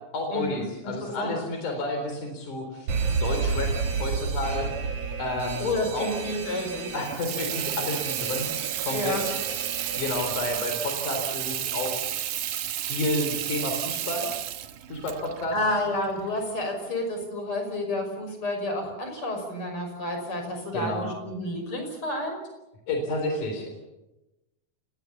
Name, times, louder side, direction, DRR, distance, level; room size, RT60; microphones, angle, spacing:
voice 1, 0.1-2.9 3.2-4.7 5.2-6.1 6.9-8.5 8.8-9.2 9.9-12.0 12.9-14.3 14.9-15.6 20.7-21.1 22.9-23.7, left 2 dB, 75° left, 4 dB, 5.3 m, -30 dB
Alarm, 2.9-10.6, right 5 dB, 55° right, 2.8 m, -31 dB
voice 2, 5.6-6.9 8.9-9.2 15.5-22.4, left 1 dB, 40° left, 4 dB, 6.8 m, -30 dB
Water tap faucet / Sink (filling or washing), 6.9-16.5, right 12 dB, 80° right, 2.7 m, -32 dB
29.5 x 19.5 x 7.2 m, 0.97 s
omnidirectional pair, 3.6 m